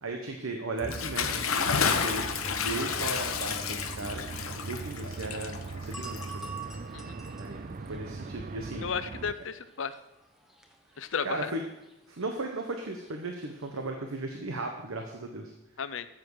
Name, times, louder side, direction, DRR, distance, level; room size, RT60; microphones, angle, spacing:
voice 1, 0.0-6.5 7.4-8.8 11.2-11.6 12.1-15.5, right 2 dB, 80° right, 3 dB, 1.1 m, -36 dB
Bathtub (filling or washing) / Splash splatter, 0.8-6.7, left 6 dB, 90° left, 1.0 m, -31 dB
sound 1, 0.8-9.3, right 3 dB, 40° right, 0.5 m, -40 dB
sound 2, 4.8-13.9, right 4 dB, ahead, 0.9 m, -50 dB
voice 2, 8.8-10.0 11.0-11.5 15.8-16.1, left 6 dB, 65° left, 12 dB, 0.6 m, -34 dB
13.5 x 7.7 x 4.8 m, 0.91 s
head